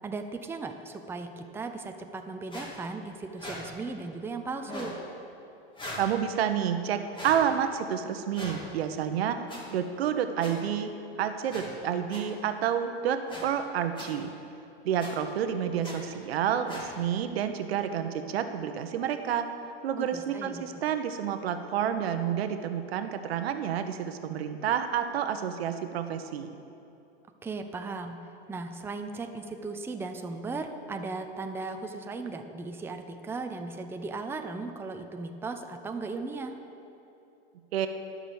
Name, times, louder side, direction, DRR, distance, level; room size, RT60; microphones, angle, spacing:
voice 1, 0.0-4.9 20.0-20.8 27.4-28.2 28.5-36.6, right 3 dB, 10° right, 5 dB, 0.6 m, -37 dB
sound 1, 2.5-2.7 3.4-3.6 4.6-4.9 5.8-6.1 7.1-7.4 8.3-8.6 9.5-9.6 10.4-10.5 11.5-11.7 12.1-12.2 13.3-13.4 14.0-14.1 15.0-15.1 15.8-16.0 16.7-16.9, left 1 dB, 15° left, 2.1 m, -40 dB
voice 2, 6.0-9.4 9.7-10.9 11.2-14.3 14.8-19.5 19.8-26.5 37.7-37.9, right 9 dB, 85° right, 8 dB, 0.9 m, -29 dB
12.0 x 6.1 x 7.0 m, 2.8 s
supercardioid pair, 120°, 30 cm